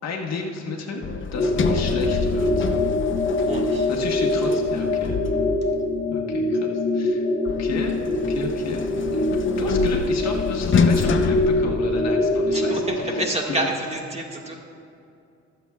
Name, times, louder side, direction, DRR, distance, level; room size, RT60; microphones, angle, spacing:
voice 1, 0.0-1.0 1.3-2.7 3.9-5.2 6.1-6.7 6.9-7.3 7.6-8.9 9.1-13.2 13.5-13.7, left 3 dB, 60° left, 1 dB, 1.5 m, -32 dB
Sliding door, 1.0-5.9 7.5-12.4, left 5 dB, 40° left, 0.7 m, -27 dB
sound 1, 1.4-13.2, left 2 dB, 25° left, 1.3 m, -24 dB
voice 2, 3.4-3.9 12.5-14.5, right 1 dB, 20° right, -1 dB, 1.8 m, -28 dB
23.5 x 8.0 x 2.4 m, 2.6 s
cardioid pair, 90°, 30 cm